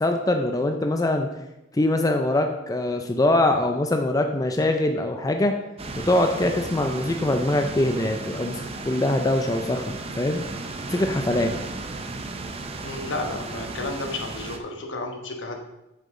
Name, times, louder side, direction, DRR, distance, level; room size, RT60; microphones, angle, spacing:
voice 1, 0.0-1.3 1.7-5.5 6.1-10.4 10.9-11.5, left 1 dB, 20° left, 5 dB, 0.4 m, -23 dB
sound 1, 5.8-14.6, right 3 dB, 30° right, 0.6 m, -35 dB
voice 2, 12.8-15.6, left 2 dB, 70° left, 3 dB, 1.1 m, -32 dB
8.0 x 6.8 x 3.7 m, 0.93 s
head